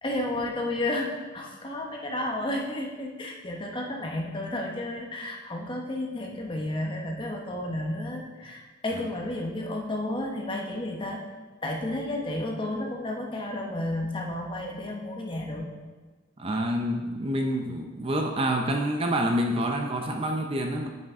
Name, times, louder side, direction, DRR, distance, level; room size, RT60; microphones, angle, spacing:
voice 1, 0.0-11.2 11.6-15.7, left 1 dB, 25° left, 0 dB, 0.9 m, -32 dB
voice 2, 16.4-20.9, right 1 dB, 30° right, 3 dB, 0.6 m, -27 dB
8.8 x 5.9 x 3.6 m, 1.4 s
head